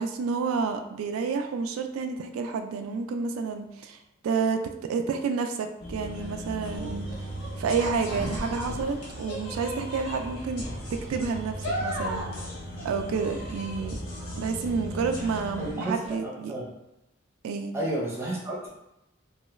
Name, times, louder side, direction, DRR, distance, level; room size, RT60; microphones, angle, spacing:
voice 1, 0.0-7.1 7.6-10.7 11.1-12.2 12.8-14.0 14.4-16.5 17.4-17.7, right 5 dB, 90° right, 6 dB, 0.3 m, -29 dB
sound 1, 5.8-15.7, equal, 50° left, 0.5 m, -38 dB
sound 2, 6.0-16.1, equal, 85° left, 0.9 m, -38 dB
voice 2, 15.6-16.7 17.7-18.7, right 1 dB, 10° right, -4 dB, 0.7 m, -32 dB
3.0 x 2.3 x 3.0 m, 0.87 s
head